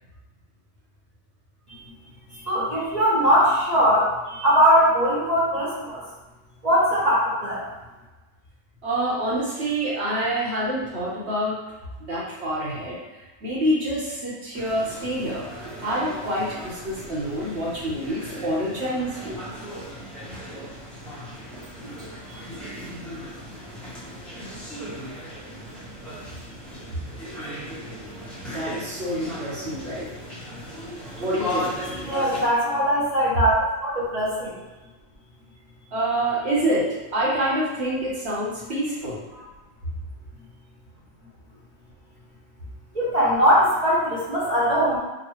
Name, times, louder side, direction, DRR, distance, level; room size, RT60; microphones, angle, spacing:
voice 1, 2.5-6.0 6.6-7.6 21.8-21.9 32.1-34.6 42.9-45.0, equal, 40° right, -8 dB, 0.8 m, -21 dB
voice 2, 8.8-11.6 12.0-13.0 13.4-15.4 15.8-19.4 28.5-30.1 31.2-31.7 35.9-39.2, right 1 dB, 60° right, -6 dB, 1.2 m, -26 dB
sound 1, 14.5-32.5, equal, ahead, 0.5 m, -37 dB
4.0 x 2.2 x 3.0 m, 1.1 s
omnidirectional pair, 1.3 m